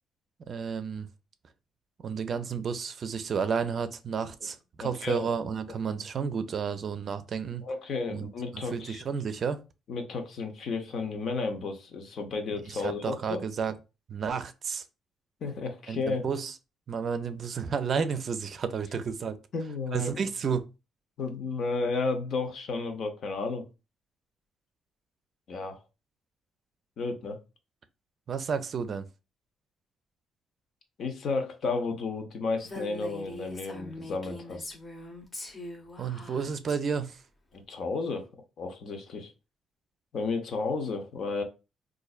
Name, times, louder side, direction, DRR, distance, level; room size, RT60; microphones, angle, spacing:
voice 1, 0.5-1.1 2.0-7.6 8.1-8.3 8.5-9.6 12.7-13.7 14.1-14.8 15.9-16.5 16.9-19.4 19.9-20.7 28.3-29.1 36.0-37.2, right 6 dB, 50° right, 0.4 m, -31 dB
voice 2, 4.8-5.3 7.6-9.0 9.9-13.4 15.4-16.2 19.5-20.1 21.2-23.7 25.5-25.8 27.0-27.4 31.0-34.8 37.5-38.3 38.6-39.3 40.1-41.4, left 4 dB, 65° left, 0.8 m, -32 dB
Female speech woman speaking, 32.6-36.8, left 2 dB, 30° left, 0.8 m, -42 dB
4.0 x 2.5 x 2.4 m
cardioid pair, 90°, 0 cm